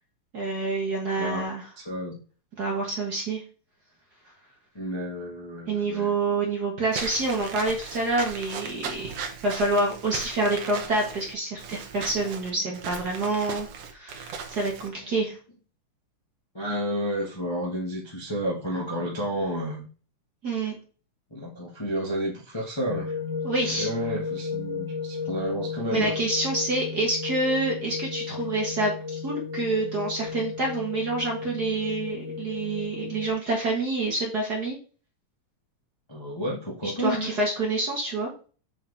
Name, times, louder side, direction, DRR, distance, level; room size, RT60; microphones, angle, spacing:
voice 1, 0.3-1.7 2.6-3.4 5.7-9.1 9.4-15.4 20.4-20.7 23.4-23.9 25.9-34.8 36.8-38.3, right 2 dB, 50° right, -1 dB, 1.2 m, -27 dB
voice 2, 1.8-2.2 4.7-6.1 12.6-12.7 15.0-15.1 16.5-19.8 21.3-23.1 23.7-26.1 36.1-37.3, equal, 25° left, -4 dB, 0.6 m, -31 dB
Walk footsteps / Squeak, 6.9-14.9, right 6 dB, 65° right, 1.6 m, -37 dB
sound 1, 22.9-33.3, left 5 dB, 90° left, 4.1 m, -34 dB
7.4 x 4.6 x 3.4 m, 0.38 s
omnidirectional pair, 3.8 m